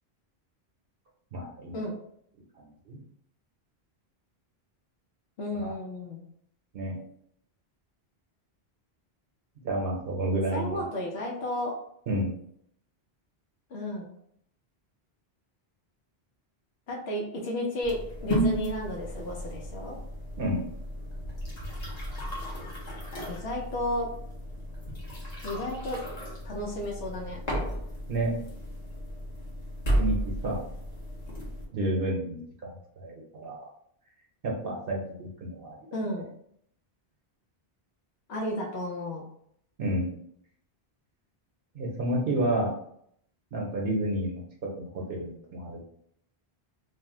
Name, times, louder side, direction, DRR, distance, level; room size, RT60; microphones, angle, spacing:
voice 1, 1.3-1.8 2.9-3.0 5.6-5.7 6.7-7.0 9.6-10.8 12.1-12.4 20.4-20.6 28.1-28.3 30.0-30.2 30.4-30.6 31.7-33.7 34.4-35.8 39.8-40.1 41.7-42.7 43.5-45.8, right 1 dB, 65° right, -1 dB, 0.8 m, -30 dB
voice 2, 5.4-6.3 10.5-11.7 13.7-14.1 16.9-20.0 23.3-24.1 25.4-26.0 26.4-27.4 35.9-36.3 38.3-39.2, left 1 dB, 80° left, -2 dB, 0.9 m, -33 dB
sound 1, 17.8-31.6, equal, 45° left, 0.8 m, -34 dB
2.5 x 2.0 x 3.6 m, 0.68 s
omnidirectional pair, 1.1 m